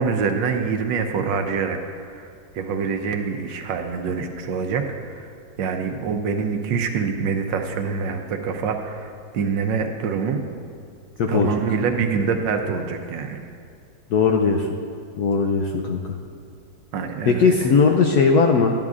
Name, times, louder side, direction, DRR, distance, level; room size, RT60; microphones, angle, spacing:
voice 1, 0.0-1.8 2.1-2.3 2.5-5.3 5.6-10.4 11.3-13.4 16.9-17.5, right 5 dB, 75° right, 5 dB, 1.3 m, -25 dB
voice 2, 14.1-14.7 15.2-16.1 17.2-18.7, left 5 dB, 75° left, 2 dB, 0.9 m, -18 dB
12.5 x 10.5 x 2.4 m, 2.2 s
omnidirectional pair, 2.1 m